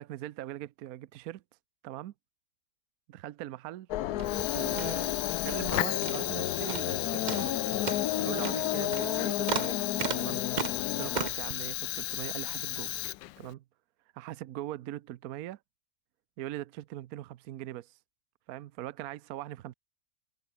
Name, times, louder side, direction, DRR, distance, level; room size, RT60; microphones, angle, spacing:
voice 1, 0.0-1.4 1.8-2.1 3.1-3.9 4.5-7.5 8.2-9.8 10.2-10.4 11.0-13.0 13.4-13.6 14.1-15.6 16.4-18.0 18.5-19.7, right 14 dB, 70° right, 1.0 m, -41 dB
sound 1, 3.9-11.3, left 13 dB, 70° left, 1.1 m, -32 dB
sound 2, 4.1-5.7 6.0-6.4 6.7-7.0 7.3-11.5, right 5 dB, 35° right, 0.9 m, -37 dB
Fire, 4.2-13.5, left 17 dB, 85° left, 1.3 m, -35 dB
omnidirectional pair, 1.9 m